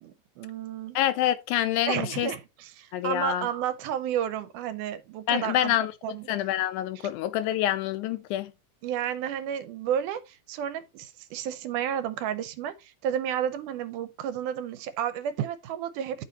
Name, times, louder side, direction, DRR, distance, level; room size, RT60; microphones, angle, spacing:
voice 1, 0.0-1.0 1.9-5.8 6.0-6.3 8.8-16.2, right 9 dB, 80° right, 2.2 m, -31 dB
voice 2, 1.0-2.3 2.9-3.5 5.3-8.5, left 12 dB, 80° left, 1.9 m, -27 dB
11.5 x 4.2 x 3.0 m
omnidirectional pair, 3.7 m